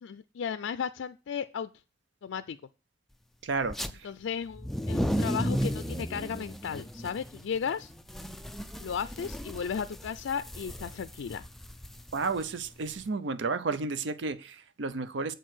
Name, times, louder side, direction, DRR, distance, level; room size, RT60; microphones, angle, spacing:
voice 1, 0.0-1.7 2.2-2.6 4.0-7.9 8.8-11.4, left 7 dB, 90° left, 0.4 m, -35 dB
voice 2, 3.4-4.1 12.1-15.3, right 4 dB, 75° right, 0.6 m, -32 dB
sound 1, 3.6-3.9 4.5-13.0, equal, ahead, 0.4 m, -34 dB
7.9 x 4.6 x 6.1 m
head